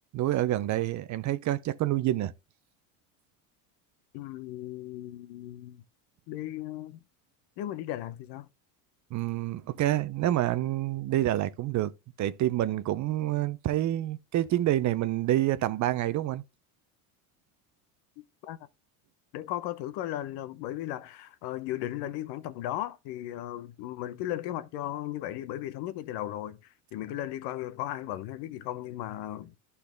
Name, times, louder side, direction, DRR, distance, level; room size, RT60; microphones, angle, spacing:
voice 1, 0.1-2.3 9.1-11.9 12.2-16.4, right 14 dB, 40° right, 0.6 m, -27 dB
voice 2, 4.1-5.8 6.3-7.0 7.6-8.5 18.4-18.6 19.3-26.6 26.9-29.6, left 13 dB, 65° left, 0.9 m, -36 dB
11.5 x 4.2 x 3.4 m
supercardioid pair, 100°, 43 cm